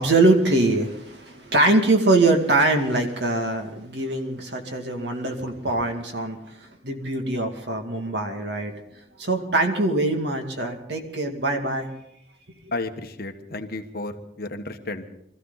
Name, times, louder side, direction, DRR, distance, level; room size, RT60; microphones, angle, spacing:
voice 1, 0.0-6.4 6.8-8.7 9.2-11.9, right 2 dB, 70° right, 3 dB, 2.3 m, -23 dB
voice 2, 12.7-15.1, left 2 dB, 55° left, 6 dB, 1.3 m, -32 dB
23.5 x 14.5 x 4.1 m, 0.79 s
head